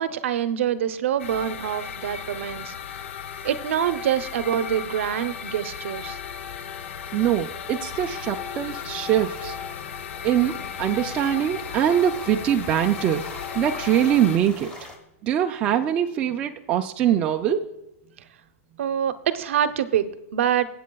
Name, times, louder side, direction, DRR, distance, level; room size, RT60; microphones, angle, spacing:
voice 1, 0.0-2.7 3.4-6.2 18.8-20.7, right 10 dB, 60° right, 11 dB, 0.7 m, -25 dB
sound 1, 1.2-14.4, left 8 dB, 60° left, 0.7 m, -35 dB
sound 2, 7.1-15.0, left 1 dB, 10° left, 1.1 m, -45 dB
voice 2, 7.1-9.5 10.2-13.2 13.6-14.7 15.2-17.7, right 10 dB, 15° right, 4 dB, 0.3 m, -23 dB
23.0 x 8.3 x 2.3 m, 0.87 s
supercardioid pair, 170°, 8 cm